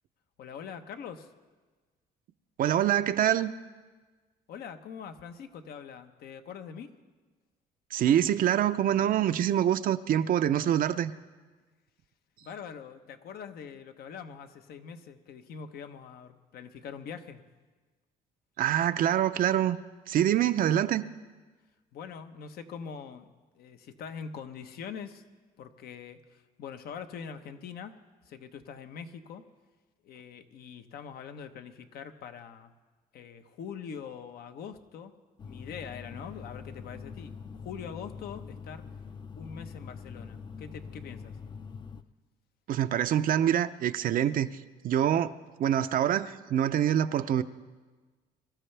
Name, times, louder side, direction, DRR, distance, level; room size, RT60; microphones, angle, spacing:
voice 1, 0.4-1.3 4.5-6.9 12.4-17.4 21.9-23.3 23.5-25.3 25.6-28.0 28.2-29.4 30.0-32.7 33.1-35.1 35.4-38.9 39.4-41.4, left 7 dB, 65° left, 8 dB, 1.0 m, -43 dB
voice 2, 2.6-3.5 7.9-11.1 18.6-19.8 20.1-21.0 42.7-44.6 44.8-45.3 45.6-47.4, right 10 dB, 55° right, 11 dB, 0.6 m, -25 dB
sound 1, 35.4-42.0, left 6 dB, 25° left, 0.6 m, -44 dB
24.0 x 13.5 x 3.4 m, 1.3 s
cardioid pair, 110°, 17 cm